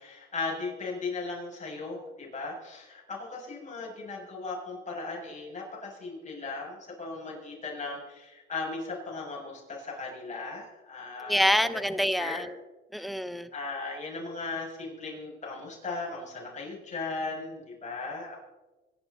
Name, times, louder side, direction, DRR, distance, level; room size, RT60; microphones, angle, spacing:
voice 1, 0.0-11.8 12.1-12.4 13.5-18.4, left 3 dB, 35° left, -3 dB, 6.9 m, -37 dB
voice 2, 11.3-12.6 12.9-13.5, equal, ahead, 11 dB, 1.0 m, -26 dB
25.5 x 11.5 x 4.1 m, 1.1 s
cardioid pair, 100°, 21 cm